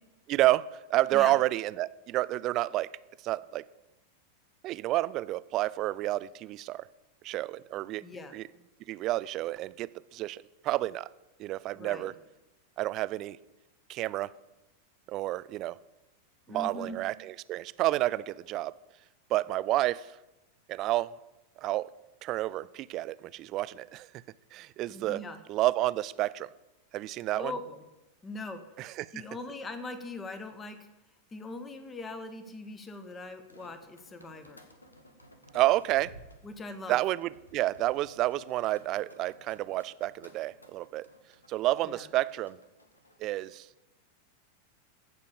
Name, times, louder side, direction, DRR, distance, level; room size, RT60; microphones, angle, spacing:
voice 1, 0.3-2.9 3.2-3.6 4.6-6.9 7.2-8.0 8.3-8.4 8.9-11.1 11.4-12.1 12.8-13.4 13.9-14.3 15.1-15.8 16.5-18.7 19.3-20.1 20.7-21.1 21.6-21.9 22.2-24.1 24.5-25.2 25.5-26.5 26.9-27.5 28.8-29.1 35.5-36.1 36.9-41.1 41.5-42.6 43.2-43.7, right 16 dB, 35° right, 18 dB, 0.4 m, -30 dB
voice 2, 8.0-8.3 11.7-12.1 16.5-17.0 24.9-25.4 27.3-27.8 28.2-28.6 29.1-30.9 31.3-34.6 36.4-37.0 41.8-42.1, left 2 dB, 20° left, 9 dB, 1.4 m, -41 dB
sound 1, 33.2-43.3, equal, 80° left, 1.3 m, -56 dB
15.5 x 5.3 x 7.0 m, 1.0 s
figure-of-eight pair, 90°, 0 cm